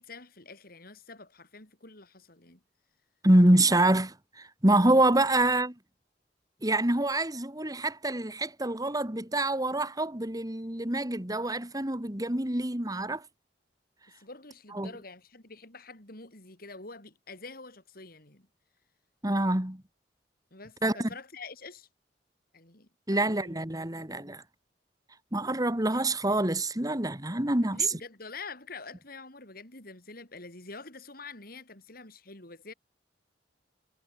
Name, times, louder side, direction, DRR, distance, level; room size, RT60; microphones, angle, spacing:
voice 1, 0.0-2.6 14.2-18.5 20.5-21.9 22.5-23.6 24.0-24.3 27.6-32.7, left 3 dB, 55° left, 6.9 m, -46 dB
voice 2, 3.2-5.7 6.6-13.2 14.7-14.9 19.2-19.8 20.8-21.1 23.1-24.4 25.3-27.8, right 1 dB, 20° right, 2.4 m, -26 dB
head